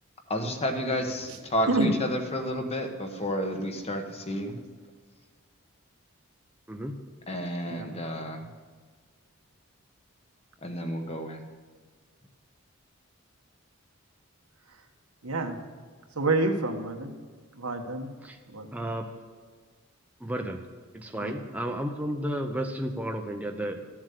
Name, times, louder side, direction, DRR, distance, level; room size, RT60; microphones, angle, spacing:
voice 1, 0.3-4.6 7.3-8.4 10.6-11.4, equal, 30° left, 5 dB, 1.2 m, -31 dB
voice 2, 1.2-2.0 2.5-2.6 7.7-7.9 15.2-15.6 16.2-17.1 17.6-18.1 18.5-18.7 21.1-21.7, right 2 dB, 85° right, 4 dB, 1.4 m, -29 dB
voice 3, 6.7-7.0 18.2-18.4 18.7-19.1 20.2-20.6 20.9-23.8, right 1 dB, 5° right, 3 dB, 0.7 m, -32 dB
13.5 x 7.3 x 6.6 m, 1.5 s
head